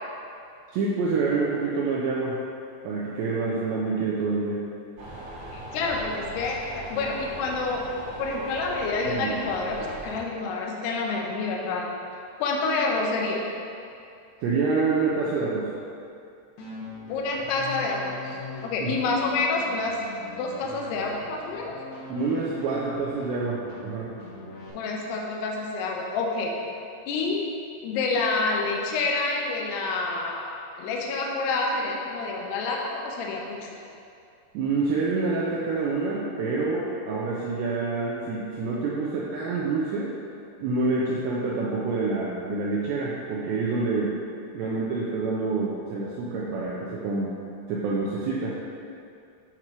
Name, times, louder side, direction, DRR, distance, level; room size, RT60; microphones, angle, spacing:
voice 1, 0.7-2.4 2.8-4.6 9.1-9.3 14.4-15.7 18.8-19.0 22.1-24.1 34.5-40.1 40.6-44.2 44.5-47.3 47.7-48.6, right 3 dB, 90° right, -5 dB, 2.5 m, -27 dB
sound 1, 5.0-10.2, right 1 dB, 70° right, 3.4 m, -39 dB
voice 2, 5.5-7.8 8.2-11.9 12.4-13.4 17.1-20.0 20.3-21.7 24.7-26.5 27.1-27.4 27.8-33.7, left 3 dB, 90° left, -1 dB, 2.3 m, -28 dB
sound 2, 16.6-24.7, left 3 dB, 70° left, 3.3 m, -42 dB
8.0 x 6.0 x 3.0 m, 2.5 s
omnidirectional pair, 5.7 m